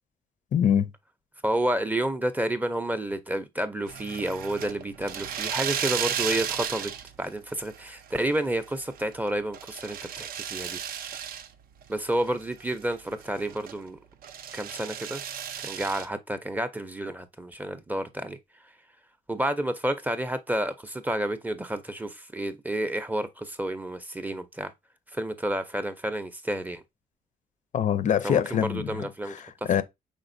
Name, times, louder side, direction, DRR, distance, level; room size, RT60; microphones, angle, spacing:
voice 1, 0.5-0.9 27.7-29.8, left 9 dB, 60° left, 0.4 m, -25 dB
voice 2, 1.4-6.9 7.2-10.8 11.9-14.0 14.5-15.2 15.6-18.4 19.3-24.7 25.1-26.8 28.2-29.4 29.6-29.8, right 1 dB, 10° right, 0.4 m, -30 dB
sound 1, 3.9-7.3 7.6-8.2 8.6-11.5 11.8-11.9 12.3-13.8 14.2-16.1, right 8 dB, 80° right, 0.5 m, -34 dB
5.0 x 3.7 x 2.6 m
cardioid pair, 130°, 15 cm